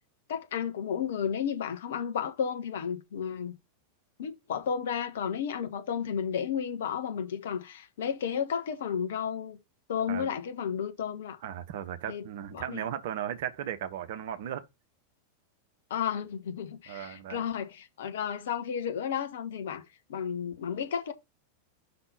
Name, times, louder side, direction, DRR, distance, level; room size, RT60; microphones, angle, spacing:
voice 1, 0.3-3.6 4.2-9.6 9.9-11.4 12.1-12.2 12.5-12.8 15.9-19.8 20.1-21.1, left 7 dB, 60° left, 1.1 m, -32 dB
voice 2, 11.4-14.6 16.9-17.4, right 10 dB, 55° right, 0.9 m, -36 dB
5.9 x 4.1 x 5.5 m
figure-of-eight pair, 90°, 0 cm